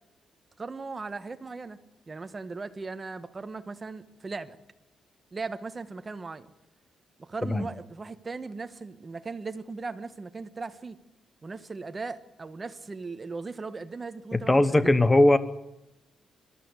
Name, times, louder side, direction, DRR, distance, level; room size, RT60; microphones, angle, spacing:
voice 1, 0.6-1.8 2.1-4.6 5.3-6.5 7.2-11.0 11.4-14.9, right 4 dB, 25° right, 10 dB, 1.2 m, -38 dB
voice 2, 14.3-15.4, left 1 dB, 15° left, 13 dB, 1.1 m, -20 dB
22.0 x 14.0 x 9.8 m, 0.91 s
cardioid pair, 150°, 0 cm